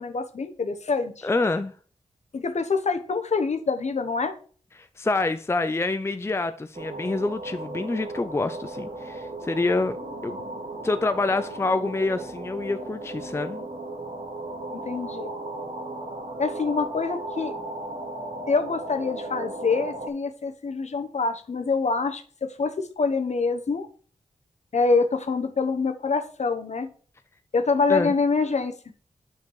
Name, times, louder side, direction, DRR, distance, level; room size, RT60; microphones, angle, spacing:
voice 1, 0.0-1.3 2.3-4.3 14.7-15.3 16.4-17.5 18.5-23.9 24.7-26.9 27.5-28.7, left 4 dB, 60° left, 1.1 m, -25 dB
voice 2, 1.2-1.7 4.8-10.0 10.2-10.4 10.8-13.7 27.9-28.1, left 3 dB, 20° left, 0.5 m, -26 dB
sound 1, 6.7-20.1, right 2 dB, 85° right, 2.6 m, -36 dB
8.1 x 4.8 x 4.8 m
wide cardioid pair, 80°, 13 cm